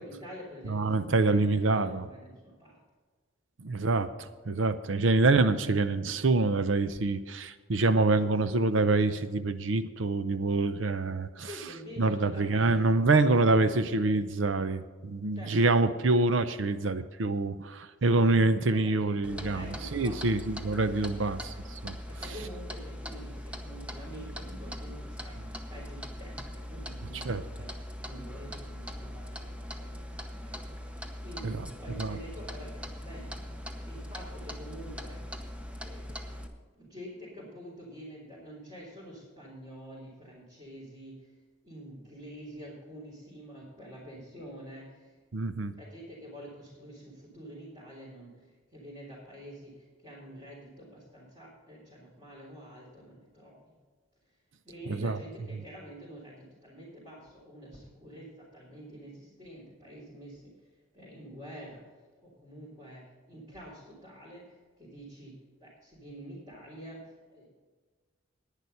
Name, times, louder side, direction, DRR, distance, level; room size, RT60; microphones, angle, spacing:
voice 1, 0.0-2.8 11.5-14.0 15.3-15.6 15.8-15.9 18.0-20.2 22.1-25.4 25.7-27.7 28.0-30.2 30.4-41.3 41.6-48.5 48.7-53.7 54.6-60.5 60.9-61.8 62.2-63.0 63.3-65.3 65.6-67.5, equal, 25° right, -8 dB, 3.8 m, -47 dB
voice 2, 0.7-2.1 3.6-11.5 12.0-22.0 22.2-22.3 27.1-27.4 31.4-31.7 32.0-32.2 45.3-45.7 54.9-55.2, right 3 dB, 70° right, 12 dB, 0.6 m, -26 dB
Clock, 19.2-36.5, equal, 5° right, 0.8 m, -41 dB
11.0 x 9.9 x 5.5 m, 1.4 s
head